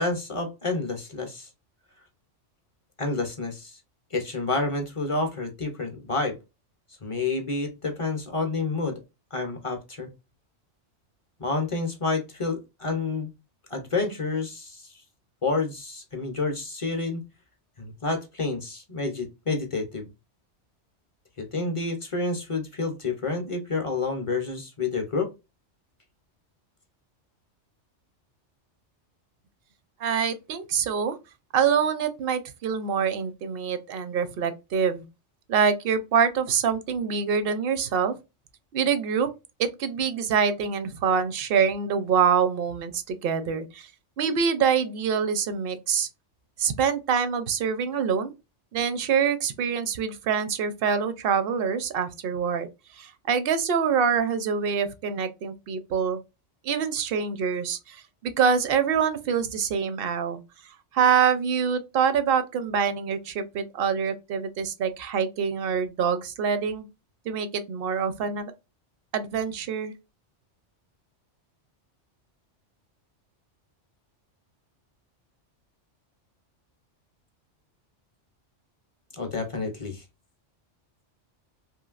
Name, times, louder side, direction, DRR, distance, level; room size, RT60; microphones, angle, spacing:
voice 1, 0.0-1.5 3.0-3.8 4.1-6.4 7.0-9.0 9.3-10.1 11.4-13.3 13.7-14.9 15.4-17.2 17.8-20.1 21.4-25.3 79.1-80.0, left 3 dB, 35° left, 0.5 m, -29 dB
voice 2, 30.0-31.2 31.5-35.0 35.5-38.1 38.7-39.3 39.6-43.9 44.2-46.1 46.6-48.3 48.7-52.7 52.9-56.2 56.6-60.4 60.9-66.9 67.3-68.5 69.1-69.9, right 6 dB, 60° right, 0.7 m, -25 dB
3.1 x 2.6 x 2.3 m
omnidirectional pair, 1.2 m